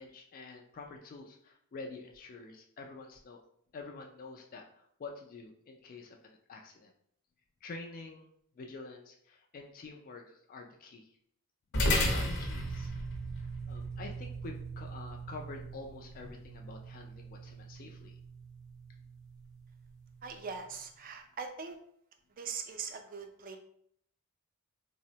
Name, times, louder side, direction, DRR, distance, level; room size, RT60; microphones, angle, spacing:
voice 1, 0.0-3.4 3.7-6.9 7.6-11.2 11.9-13.0 13.4-18.2, left 3 dB, 40° left, 2 dB, 0.3 m, -48 dB
sound 1, 11.7-20.4, equal, 60° left, 0.7 m, -36 dB
voice 2, 20.2-21.8 22.4-23.6, right 5 dB, 40° right, 5 dB, 0.4 m, -41 dB
3.4 x 2.0 x 2.7 m, 0.68 s
head